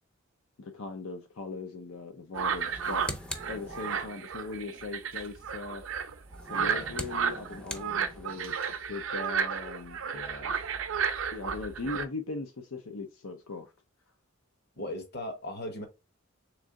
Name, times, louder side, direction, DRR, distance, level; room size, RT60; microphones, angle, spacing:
voice 1, 0.6-5.8 6.4-10.0 11.3-13.7, left 3 dB, 80° left, 0.6 m, -39 dB
sound 1, 2.3-12.0, right 6 dB, 65° right, 0.5 m, -33 dB
sound 2, 2.6-4.3 6.2-8.6, equal, 5° left, 0.4 m, -42 dB
voice 2, 6.5-6.9 10.1-10.5 14.8-15.9, left 1 dB, 55° left, 1.1 m, -38 dB
3.6 x 3.2 x 3.7 m
head